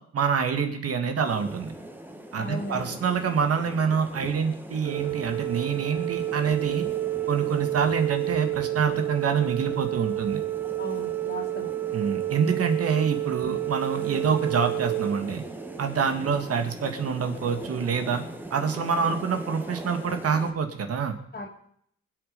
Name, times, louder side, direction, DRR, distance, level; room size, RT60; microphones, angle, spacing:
voice 1, 0.1-1.7 2.3-6.9 7.3-10.4 11.9-15.4 15.8-18.2 18.5-21.2, right 6 dB, 50° right, 6 dB, 2.2 m, -26 dB
sound 1, 1.2-20.5, right 1 dB, 5° right, 1.6 m, -41 dB
voice 2, 2.4-3.0 10.8-11.7 21.3-21.5, left 2 dB, 30° left, -3 dB, 2.9 m, -36 dB
Organ, 4.8-15.9, right 15 dB, 65° right, 2.4 m, -30 dB
26.0 x 8.6 x 5.4 m, 0.68 s
cardioid pair, 135°, 30 cm